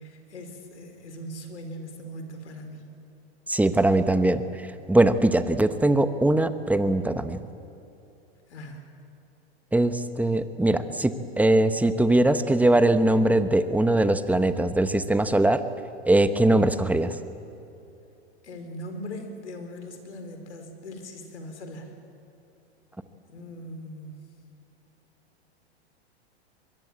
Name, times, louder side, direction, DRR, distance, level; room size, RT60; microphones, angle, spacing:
voice 1, 0.0-2.8 8.5-8.8 18.4-21.9 23.3-24.1, equal, 85° left, 6 dB, 4.5 m, -40 dB
voice 2, 3.5-4.4 4.9-7.4 9.7-15.6 16.1-17.1, right 1 dB, 5° right, 10 dB, 1.1 m, -21 dB
24.0 x 22.0 x 8.6 m, 2.7 s
hypercardioid pair, 110°, 33 cm